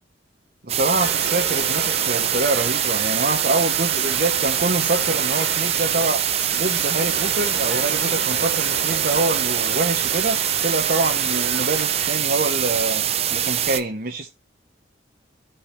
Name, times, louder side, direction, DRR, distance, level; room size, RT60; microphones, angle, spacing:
voice 1, 0.6-6.2 6.5-13.0 13.3-14.3, right 2 dB, 50° right, 1 dB, 1.0 m, -25 dB
sound 1, 0.7-13.8, right 10 dB, 35° right, 0.5 m, -23 dB
sound 2, 1.0-12.1, right 4 dB, 65° right, 1.9 m, -32 dB
14.0 x 4.9 x 3.3 m, 0.27 s
head